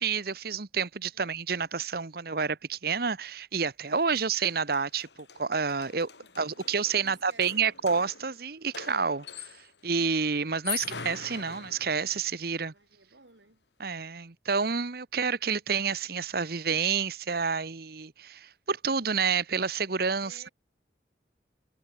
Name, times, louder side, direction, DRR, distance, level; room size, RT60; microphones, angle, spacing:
voice 1, 0.0-5.1 5.4-6.1 6.4-9.5 9.8-12.7 13.8-20.5, right 5 dB, 60° right, 1.1 m, -29 dB
sound 1, 3.8-3.9 4.2-9.8 10.5-12.3, left 8 dB, 75° left, 3.9 m, -43 dB
voice 2, 3.9-4.2 6.2-7.8 12.7-13.6 20.2-20.5, right 4 dB, 90° right, 4.1 m, -56 dB
head